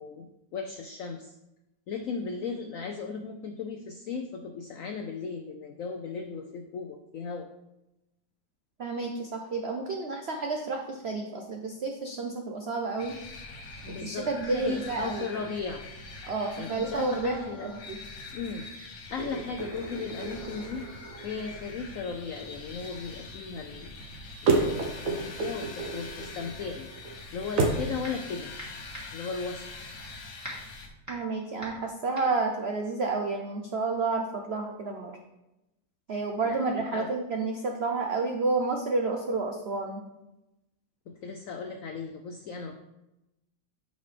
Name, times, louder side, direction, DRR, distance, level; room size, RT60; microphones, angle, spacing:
voice 1, 0.0-1.4 1.9-7.5 13.8-15.8 16.6-17.7 18.3-20.9 21.2-24.0 24.4-26.9 27.3-28.5 29.1-29.7 36.4-37.1 41.1-42.8, left 5 dB, 80° left, 5 dB, 0.7 m, -36 dB
voice 2, 8.8-13.2 13.9-15.3 16.2-18.0 31.1-35.1 36.1-40.0, right 3 dB, 75° right, 2 dB, 0.5 m, -30 dB
sound 1, 13.0-30.9, left 3 dB, 55° left, 1.3 m, -44 dB
sound 2, 19.2-27.9, right 3 dB, 50° right, 1.2 m, -33 dB
sound 3, 28.0-28.3 28.6-33.6, equal, 10° right, 1.7 m, -44 dB
8.9 x 5.3 x 3.4 m, 0.92 s
omnidirectional pair, 2.0 m